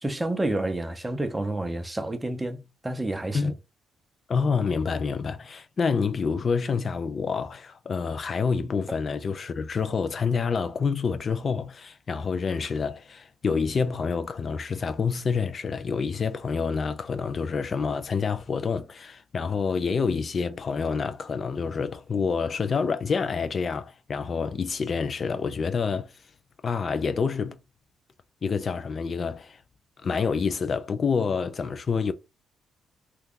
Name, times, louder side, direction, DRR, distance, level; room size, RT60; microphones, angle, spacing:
voice 1, 0.0-3.5, right 2 dB, 15° right, 0.6 m, -29 dB
voice 2, 4.3-26.2 26.6-27.6 28.4-29.6 30.0-32.1, left 5 dB, 45° left, 0.4 m, -27 dB
2.9 x 2.4 x 3.6 m
cardioid pair, 90°, 0 cm